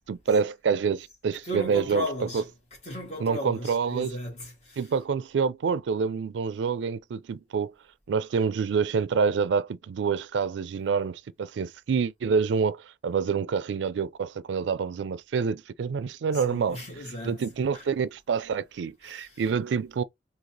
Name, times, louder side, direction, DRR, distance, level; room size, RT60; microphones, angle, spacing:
voice 1, 0.1-2.4 3.2-4.2 4.8-7.7 8.1-16.8 17.2-20.0, right 5 dB, 85° right, 0.4 m, -27 dB
voice 2, 1.4-2.4 2.8-4.8 16.3-17.4 17.7-17.8 19.0-19.4, equal, 35° left, 1.9 m, -35 dB
3.9 x 2.8 x 2.9 m
head